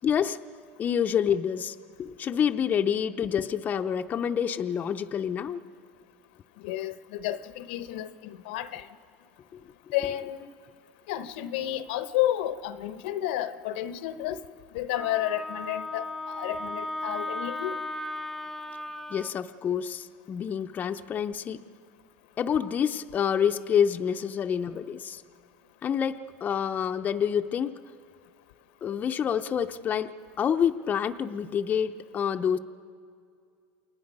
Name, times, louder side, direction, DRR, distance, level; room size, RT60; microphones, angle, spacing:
voice 1, 0.0-0.4 0.8-5.6 9.5-9.6 19.1-21.6 22.4-25.2 25.8-27.8 28.8-32.6, left 8 dB, 30° left, 6 dB, 0.6 m, -27 dB
voice 2, 6.6-8.9 9.9-10.5 11.1-14.4 14.7-17.8, left 13 dB, 80° left, 12 dB, 0.9 m, -31 dB
Wind instrument woodwind instrument, 14.9-19.3, left 2 dB, ahead, 0.8 m, -36 dB
28.5 x 19.5 x 5.4 m, 2.3 s
supercardioid pair, 120°, 5 cm